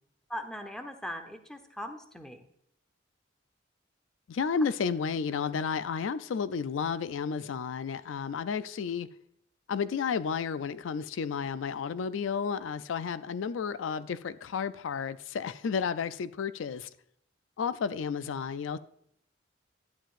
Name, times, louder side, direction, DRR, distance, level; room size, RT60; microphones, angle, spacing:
voice 1, 0.3-2.4, equal, 5° left, 0.8 m, -40 dB
voice 2, 4.3-9.1 9.7-16.9 17.6-18.8, left 6 dB, 80° left, 0.4 m, -32 dB
11.5 x 9.2 x 2.5 m
head